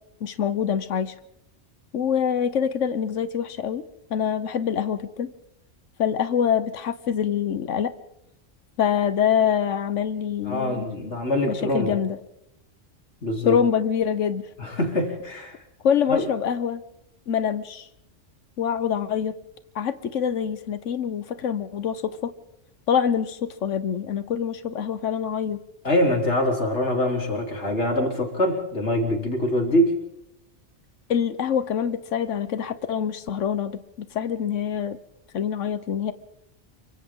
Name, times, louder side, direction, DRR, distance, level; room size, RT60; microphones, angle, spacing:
voice 1, 0.2-1.1 1.9-3.8 4.1-5.3 6.0-7.9 8.8-10.8 11.5-12.2 13.4-14.4 15.8-16.8 17.3-17.9 18.6-19.3 19.7-22.3 22.9-25.6 31.1-35.0 35.3-36.1, left 8 dB, 90° left, 13 dB, 1.3 m, -25 dB
voice 2, 10.5-12.0 13.2-13.5 14.6-15.6 16.1-16.2 25.8-30.0, left 1 dB, 70° left, 2 dB, 4.0 m, -24 dB
28.0 x 24.5 x 3.8 m, 0.80 s
omnidirectional pair, 1.2 m